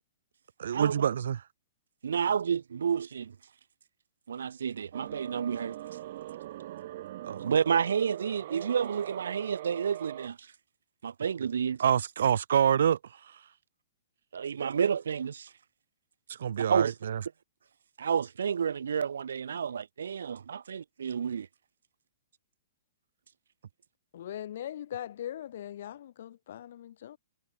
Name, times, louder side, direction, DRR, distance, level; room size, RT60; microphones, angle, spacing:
voice 1, 0.6-1.4 7.2-7.5 11.8-13.0 16.4-17.2, right 8 dB, 65° right, 1.4 m, -26 dB
voice 2, 2.0-3.3 4.3-5.8 7.4-10.5 11.0-11.8 14.3-15.5 16.7-16.9 18.0-21.5, right 7 dB, 85° right, 2.3 m, -30 dB
sound 1, 4.9-10.3, right 14 dB, 45° right, 1.1 m, -42 dB
voice 3, 24.1-27.2, left 11 dB, 50° left, 2.0 m, -40 dB
hypercardioid pair, 165°, 0 cm